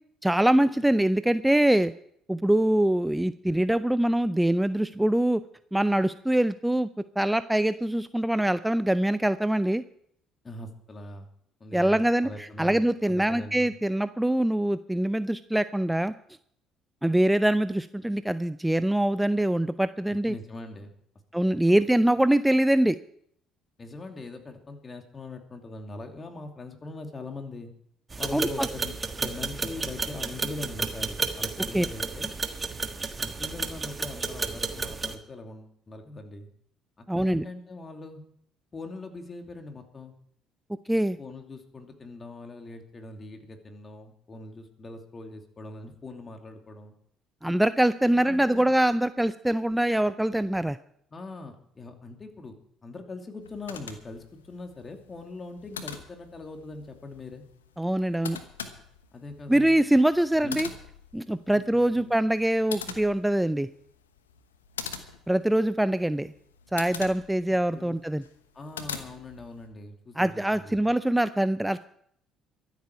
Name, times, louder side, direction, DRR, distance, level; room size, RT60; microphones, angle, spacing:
voice 1, 0.2-1.9 2.3-5.4 5.7-9.8 11.7-16.1 17.0-20.3 21.3-23.0 28.3-28.7 31.7-31.9 37.1-37.4 40.9-41.2 47.4-50.8 57.8-58.4 59.5-60.7 61.1-63.7 65.3-66.3 66.7-68.2 70.2-71.8, right 1 dB, 5° right, 14 dB, 0.5 m, -24 dB
voice 2, 10.4-11.3 11.6-12.8 13.1-13.7 20.3-21.0 21.7-21.8 23.8-27.7 28.2-32.3 33.2-36.5 37.0-38.2 38.7-40.1 41.2-46.9 48.1-48.7 51.1-57.4 59.1-59.8 60.4-60.7 61.5-62.1 67.7-68.0 68.5-70.8, left 2 dB, 30° left, 4 dB, 2.7 m, -42 dB
sound 1, 28.1-35.1, right 4 dB, 30° right, 1.6 m, -32 dB
sound 2, 53.4-69.7, left 7 dB, 90° left, 1.0 m, -43 dB
23.5 x 8.3 x 4.7 m, 0.67 s
hypercardioid pair, 55°, 0 cm